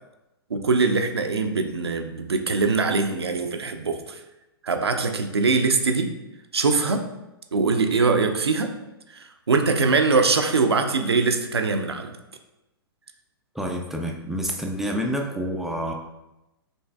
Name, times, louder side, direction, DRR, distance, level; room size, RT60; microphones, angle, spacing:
voice 1, 0.5-4.2 4.6-6.2 6.5-7.1 7.5-8.8 9.1-12.1, right 4 dB, 80° right, 6 dB, 0.5 m, -22 dB
voice 2, 13.5-15.9, equal, ahead, 1 dB, 0.4 m, -28 dB
5.3 x 3.2 x 2.2 m, 0.96 s
figure-of-eight pair, 110°, 13 cm